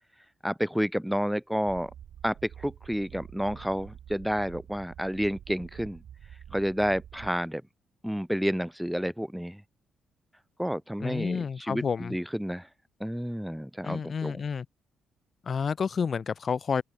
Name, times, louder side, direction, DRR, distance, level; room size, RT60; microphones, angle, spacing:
voice 1, 0.4-1.9 2.2-6.0 6.5-7.6 8.0-9.6 10.6-12.7 13.0-14.4, equal, ahead, 1.1 m, -30 dB
sound 1, 1.7-7.3, right 10 dB, 65° right, 4.3 m, -47 dB
voice 2, 11.0-12.2 13.8-14.7 15.4-16.8, left 6 dB, 45° left, 1.2 m, -30 dB
cardioid pair, 90°, 0 cm